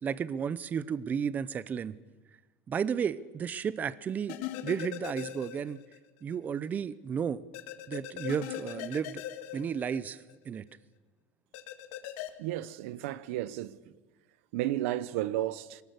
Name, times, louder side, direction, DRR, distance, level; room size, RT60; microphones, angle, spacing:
voice 1, 0.0-2.0 2.7-4.4 4.6-5.8 6.2-7.4 7.9-9.2 9.5-10.7, right 7 dB, 25° right, 0.6 m, -33 dB
sound 1, 4.3-6.0 6.3-6.4 7.5-10.4 11.5-12.3, left 12 dB, 75° left, 1.9 m, -40 dB
voice 2, 12.4-13.7 14.5-15.8, right 14 dB, 90° right, 0.9 m, -32 dB
22.5 x 18.5 x 8.1 m
cardioid pair, 155°, 7 cm